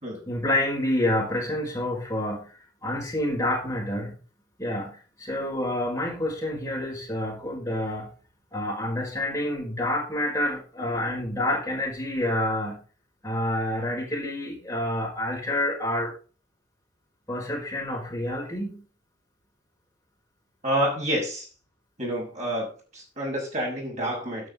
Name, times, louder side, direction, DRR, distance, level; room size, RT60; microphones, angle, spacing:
voice 1, 0.3-4.2 4.6-8.1 8.5-12.8 13.2-16.1 17.3-18.8, left 1 dB, 15° left, -3 dB, 5.5 m, -28 dB
voice 2, 20.6-21.4 22.0-22.7 22.9-24.5, equal, 35° right, -1 dB, 6.6 m, -28 dB
12.0 x 10.5 x 4.0 m, 0.36 s
head